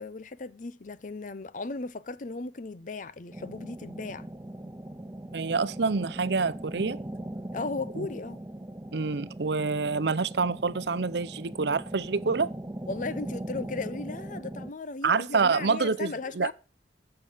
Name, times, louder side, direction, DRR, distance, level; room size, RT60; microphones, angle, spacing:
voice 1, 0.0-4.3 7.5-8.4 12.9-16.5, left 3 dB, 45° left, 0.6 m, -36 dB
sound 1, 3.3-14.7, right 1 dB, 15° right, 0.6 m, -40 dB
voice 2, 5.3-7.0 8.0-8.1 8.9-12.5 15.0-16.5, right 4 dB, 70° right, 0.7 m, -27 dB
15.0 x 6.8 x 5.0 m
head